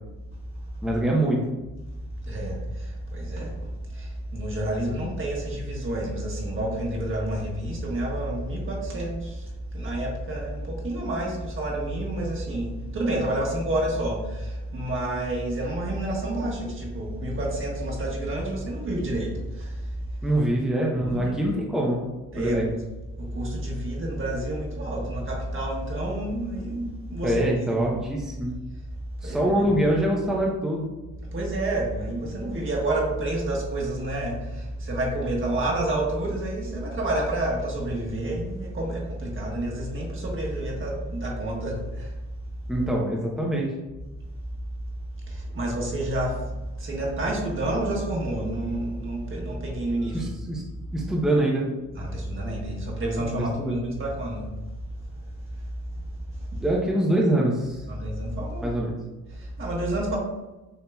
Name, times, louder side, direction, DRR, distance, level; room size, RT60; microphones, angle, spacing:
voice 1, 0.8-1.4 20.2-22.1 22.4-22.7 27.2-28.5 29.2-30.9 42.7-43.7 50.1-50.6 50.9-51.7 53.4-53.7 56.6-57.8 58.6-58.9, right 1 dB, ahead, -3 dB, 0.7 m, -24 dB
voice 2, 2.3-3.5 3.9-9.3 9.7-19.3 19.6-19.7 21.0-21.3 22.3-22.6 23.2-27.4 27.7-28.0 29.2-29.6 31.3-42.1 45.3-46.4 46.8-50.3 52.0-54.4 56.5-56.6 57.9-58.8 59.6-60.2, right 1 dB, 45° right, -2 dB, 1.4 m, -29 dB
6.9 x 2.8 x 2.3 m, 1.1 s
cardioid pair, 90°, 30 cm